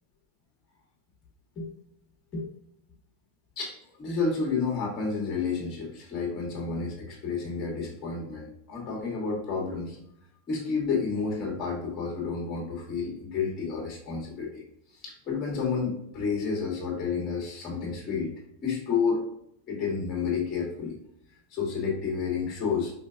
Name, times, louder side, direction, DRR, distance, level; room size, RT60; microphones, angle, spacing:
voice 1, 4.0-10.0 10.5-14.6 15.0-18.3 18.6-19.3 19.7-21.0 21.5-22.9, left 5 dB, 35° left, -2 dB, 1.5 m, -30 dB
4.4 x 3.3 x 2.4 m, 0.74 s
hypercardioid pair, 115°, 0 cm